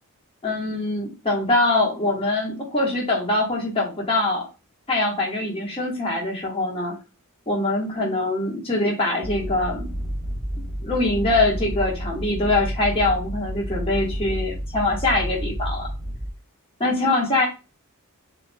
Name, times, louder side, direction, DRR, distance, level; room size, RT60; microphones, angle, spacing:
voice 1, 0.4-4.5 4.9-6.9 7.5-10.0 10.8-15.9 16.8-17.5, left 2 dB, 25° left, -2 dB, 1.2 m, -23 dB
sound 1, 9.2-16.3, equal, ahead, 1.8 m, -30 dB
6.3 x 2.8 x 2.2 m, 0.29 s
head